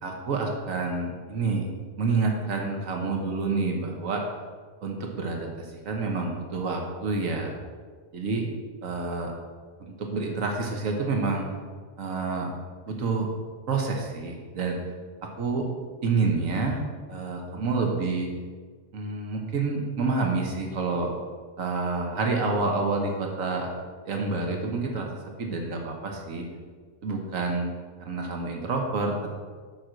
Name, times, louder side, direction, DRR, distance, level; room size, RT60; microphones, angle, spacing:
voice 1, 0.0-1.7 2.0-4.2 4.8-7.5 8.1-8.5 8.8-9.3 9.8-11.4 12.0-12.5 12.9-13.3 13.7-14.8 15.2-15.7 16.0-16.8 17.1-18.3 18.9-21.1 21.6-23.7 24.0-25.1 25.4-26.4 27.0-27.7 28.0-29.3, right 3 dB, 85° right, 2 dB, 1.6 m, -28 dB
7.2 x 6.0 x 6.5 m, 1.5 s
omnidirectional pair, 1.4 m